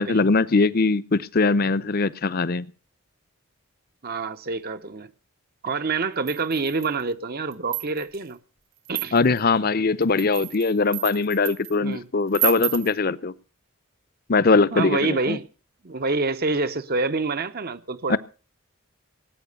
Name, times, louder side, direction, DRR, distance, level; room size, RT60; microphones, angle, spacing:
voice 1, 0.0-2.7 9.1-13.3 14.3-15.4 18.1-18.2, left 3 dB, 45° left, 0.7 m, -21 dB
voice 2, 4.0-5.1 5.6-8.4 8.9-9.2 11.8-12.1 14.7-15.5 15.8-18.2, right 3 dB, 45° right, 0.8 m, -27 dB
sound 1, 6.3-7.0 7.5-8.2 8.9-9.4 10.0-11.7 12.3-12.9, right 16 dB, 65° right, 1.2 m, -30 dB
18.5 x 9.3 x 6.7 m
head